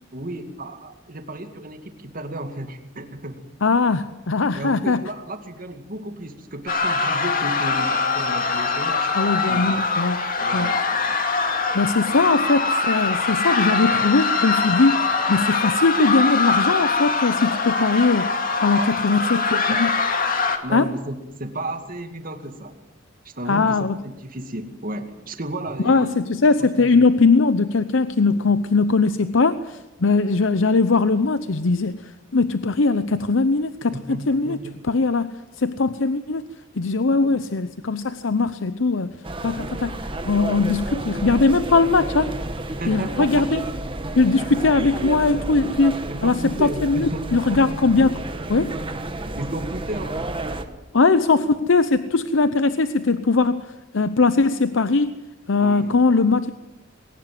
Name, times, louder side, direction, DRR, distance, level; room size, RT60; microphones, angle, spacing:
voice 1, 0.1-3.5 4.5-9.1 9.5-9.9 10.4-10.8 18.8-20.0 20.6-22.7 23.2-26.2 26.6-27.1 33.9-34.8 37.1-37.4 42.8-43.5 46.1-47.8 49.2-50.4 55.6-56.1, right 1 dB, 50° right, 6 dB, 2.3 m, -33 dB
voice 2, 3.6-5.1 9.2-10.7 11.7-19.9 20.7-20.9 23.5-23.9 25.8-34.6 34.8-36.4 36.8-39.2 39.4-40.0 40.2-42.3 42.9-43.6 44.2-48.1 48.5-48.7 50.9-53.7 53.9-55.1 55.5-56.5, left 3 dB, 85° left, 12 dB, 0.8 m, -20 dB
sound 1, 6.7-20.6, left 4 dB, 50° left, 2.3 m, -23 dB
sound 2, 39.2-50.6, right 1 dB, 30° right, 1.5 m, -31 dB
20.5 x 18.5 x 7.8 m, 0.98 s
head